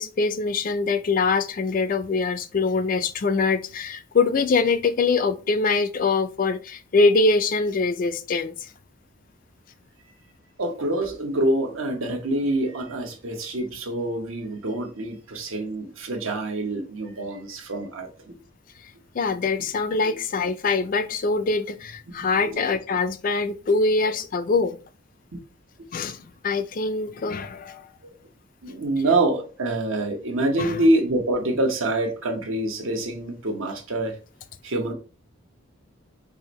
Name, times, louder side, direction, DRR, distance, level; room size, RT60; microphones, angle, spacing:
voice 1, 0.0-8.7 19.1-24.8 25.9-27.9 30.6-30.8, left 4 dB, 40° left, 0.3 m, -23 dB
voice 2, 10.6-18.3 20.0-20.2 22.4-22.7 25.3-25.4 28.0-28.1 28.6-34.2 34.6-34.9, right 1 dB, 75° right, 0.9 m, -26 dB
4.7 x 2.6 x 3.0 m
head